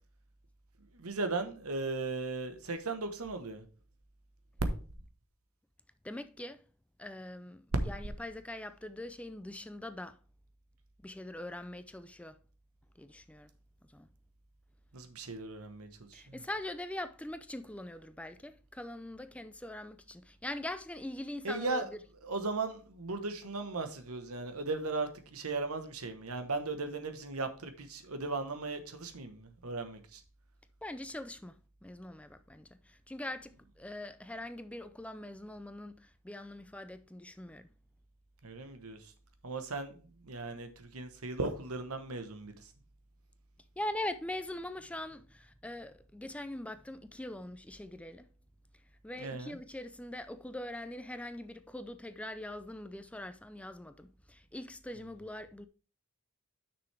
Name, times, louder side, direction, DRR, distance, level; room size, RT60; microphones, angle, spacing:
voice 1, 0.9-3.6 7.7-7.9 14.9-16.4 21.4-21.9 22.2-30.2 38.4-39.0 39.4-42.6 49.2-49.6, right 3 dB, 90° right, 1.2 m, -37 dB
voice 2, 6.0-6.6 7.0-10.2 11.0-12.4 13.0-13.5 13.9-14.1 16.1-22.0 30.8-37.7 43.8-48.3 49.0-55.7, left 1 dB, 5° left, 0.4 m, -42 dB
9.7 x 6.0 x 3.4 m
head